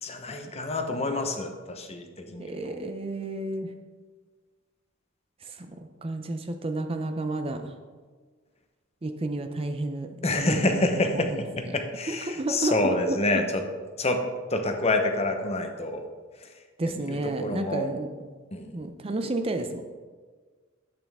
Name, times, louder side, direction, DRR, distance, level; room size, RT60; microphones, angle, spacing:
voice 1, 0.0-2.8 10.2-13.7 14.0-16.0 16.4-17.9 18.5-18.8, left 2 dB, 30° left, 5 dB, 0.9 m, -28 dB
voice 2, 2.4-3.7 5.4-7.7 9.0-10.8 11.3-11.4 11.7-11.8 12.1-13.4 16.8-18.3 18.7-19.8, right 2 dB, 25° right, 7 dB, 0.5 m, -31 dB
10.5 x 8.6 x 3.5 m, 1.5 s
head